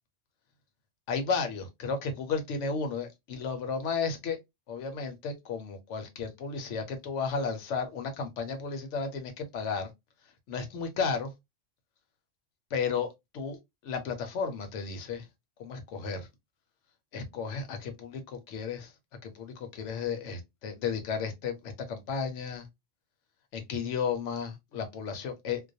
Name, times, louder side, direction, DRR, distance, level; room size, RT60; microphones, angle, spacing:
voice 1, 1.1-4.4 4.7-9.9 10.5-11.3 12.7-13.1 13.3-13.6 13.8-15.3 15.6-16.3 17.1-18.9 19.2-22.7 23.5-25.6, left 5 dB, 75° left, 0.9 m, -33 dB
2.3 x 2.1 x 2.5 m
omnidirectional pair, 1.3 m